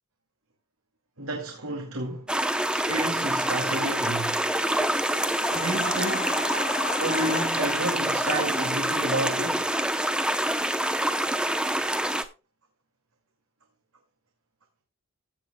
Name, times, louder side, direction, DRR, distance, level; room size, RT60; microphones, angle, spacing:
voice 1, 1.2-2.3 2.7-4.5 5.5-6.5 7.0-9.7, right 2 dB, 80° right, 2.4 m, -31 dB
sound 1, 2.3-12.2, right 1 dB, 5° right, 0.8 m, -26 dB
sound 2, 4.6-9.1, left 5 dB, 35° left, 0.7 m, -36 dB
15.5 x 8.7 x 2.3 m
head